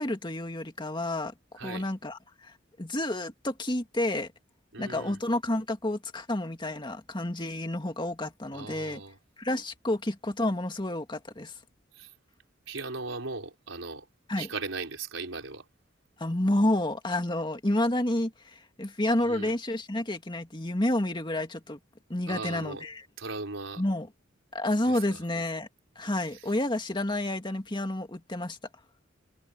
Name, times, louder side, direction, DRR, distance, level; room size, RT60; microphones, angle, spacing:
voice 1, 0.0-1.3 1.6-4.3 4.8-9.0 9.4-11.5 14.3-14.5 16.2-21.8 22.1-23.0 23.8-24.1 24.5-25.7 26.0-28.6, left 1 dB, 25° left, 2.1 m, -30 dB
voice 2, 1.6-1.9 4.7-5.2 8.5-9.2 11.9-12.1 12.7-14.1 14.4-15.7 19.2-19.5 22.3-22.9 23.2-23.8 24.8-25.2 26.3-26.5, right 3 dB, 90° right, 4.0 m, -38 dB
head